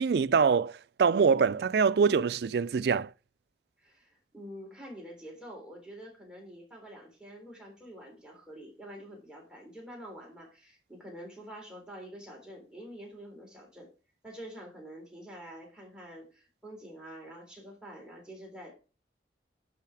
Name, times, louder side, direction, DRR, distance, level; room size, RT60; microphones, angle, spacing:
voice 1, 0.0-3.1, right 5 dB, 65° right, 0.4 m, -24 dB
voice 2, 3.8-13.9 14.2-18.7, equal, 5° right, 3.3 m, -47 dB
11.5 x 4.9 x 4.7 m
head